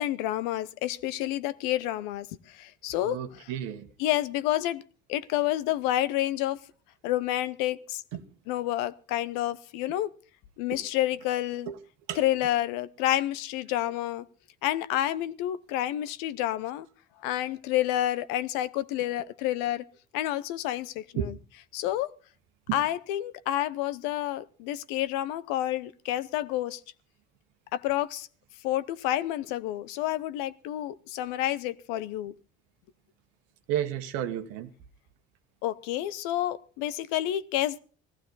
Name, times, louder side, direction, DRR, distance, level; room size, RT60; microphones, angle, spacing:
voice 1, 0.0-3.5 4.0-4.8 5.1-6.6 7.0-8.0 8.5-10.1 10.6-11.7 12.1-14.3 14.6-16.9 17.2-19.8 20.1-21.4 21.7-22.1 22.7-26.8 27.7-28.3 28.6-32.3 35.6-37.8, left 13 dB, 75° left, 0.8 m, -29 dB
voice 2, 3.0-3.9 8.1-8.3 10.7-10.8 11.7-11.8 12.1-12.2 21.2-21.3 22.7-22.8 33.7-34.7, right 11 dB, 75° right, 1.3 m, -32 dB
17.5 x 15.0 x 4.0 m
hypercardioid pair, 55°, 34 cm